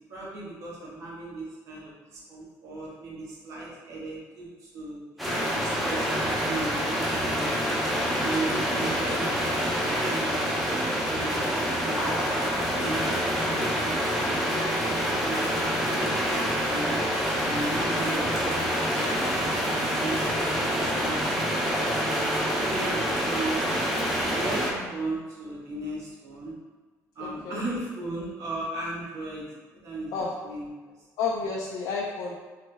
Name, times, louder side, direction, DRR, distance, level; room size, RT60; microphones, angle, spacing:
voice 1, 0.1-5.0 5.5-6.2 6.5-7.8 8.2-12.3 12.7-15.4 15.9-16.9 17.4-18.4 18.9-21.8 22.6-23.7 24.1-26.5 27.1-30.7, right 2 dB, 55° right, -5 dB, 1.0 m, -37 dB
sound 1, 5.2-24.7, equal, ahead, 0.5 m, -27 dB
voice 2, 27.2-27.6 30.1-30.4 31.2-32.4, left 4 dB, 75° left, -3 dB, 0.4 m, -31 dB
3.2 x 2.0 x 3.2 m, 1.3 s
cardioid pair, 135°, 6 cm